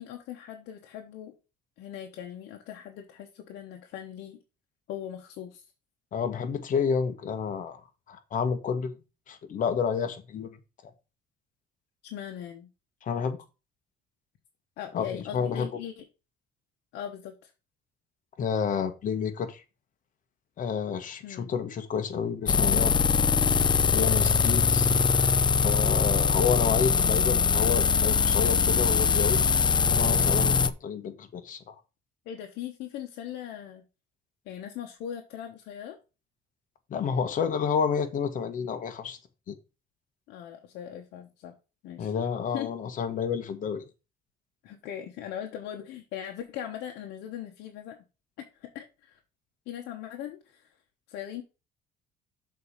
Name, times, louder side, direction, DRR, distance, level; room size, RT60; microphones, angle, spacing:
voice 1, 0.0-1.3 1.8-4.4 4.9-5.7 12.0-12.7 14.8-16.0 16.9-17.5 21.2-21.5 32.3-33.8 34.5-36.0 40.3-41.5 41.8-42.1 42.5-42.7 44.6-48.0 48.4-49.2 49.7-50.7 51.1-51.4, left 10 dB, 80° left, 1.1 m, -39 dB
voice 2, 6.1-7.8 8.1-8.9 9.3-10.6 13.0-13.4 14.9-15.7 18.4-19.6 20.6-22.9 23.9-24.9 25.6-29.4 29.9-31.7 36.9-39.2 39.5-39.6 42.0-43.8, left 6 dB, 50° left, 1.4 m, -30 dB
sound 1, 22.5-30.7, left 6 dB, 25° left, 0.6 m, -22 dB
6.8 x 4.2 x 6.5 m
cardioid pair, 110°, 17 cm